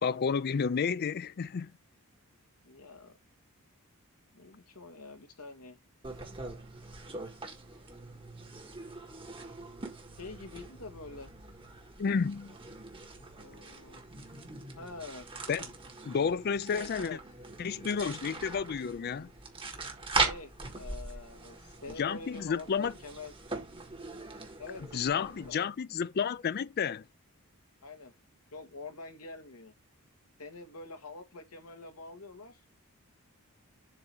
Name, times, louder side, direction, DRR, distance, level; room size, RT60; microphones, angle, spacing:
voice 1, 0.0-1.7 12.0-12.6 15.5-15.7 16.0-17.2 17.6-19.3 22.0-22.9 24.9-27.0, left 6 dB, 45° left, 0.4 m, -31 dB
voice 2, 2.6-3.1 4.3-5.8 9.6-9.7 10.2-11.3 13.3-14.0 14.8-15.3 16.7-17.2 20.2-23.3 24.6-25.6 27.8-28.1 28.5-29.7 30.4-32.6, left 3 dB, 80° left, 1.6 m, -46 dB
sound 1, 6.0-25.5, right 3 dB, 25° right, 1.7 m, -40 dB
7.7 x 2.9 x 6.1 m
head